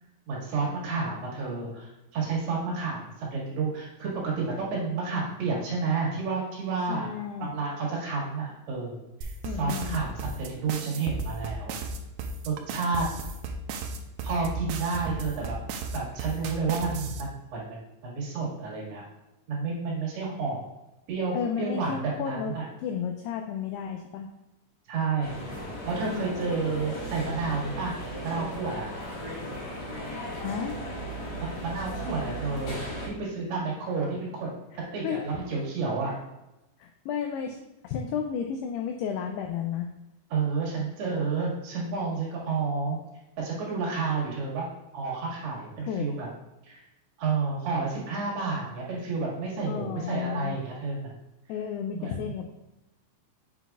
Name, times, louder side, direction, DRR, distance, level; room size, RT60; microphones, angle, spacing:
voice 1, 0.3-7.1 7.4-9.0 9.2-9.3 9.6-11.8 12.4-13.1 14.2-15.6 15.9-19.0 19.5-20.6 21.1-22.7 24.9-25.4 25.9-28.0 28.2-28.9 31.6-34.5 34.7-36.2 40.3-43.0 43.4-44.7 44.9-46.3 46.6-46.8 47.2-51.1 51.9-52.3, right 4 dB, 65° right, -5 dB, 3.7 m, -30 dB
voice 2, 6.9-7.5 9.4-10.0 21.3-22.5 22.8-24.3 30.4-30.8 34.7-35.2 36.8-37.6 37.8-39.9 45.9-46.1 49.7-50.6 51.5-52.5, left 7 dB, 90° left, 4 dB, 2.3 m, -32 dB
sound 1, 9.2-17.2, right 3 dB, 85° right, 2.6 m, -34 dB
sound 2, 25.2-33.1, equal, 65° left, 1.8 m, -36 dB
8.0 x 5.9 x 2.4 m, 0.97 s
omnidirectional pair, 5.2 m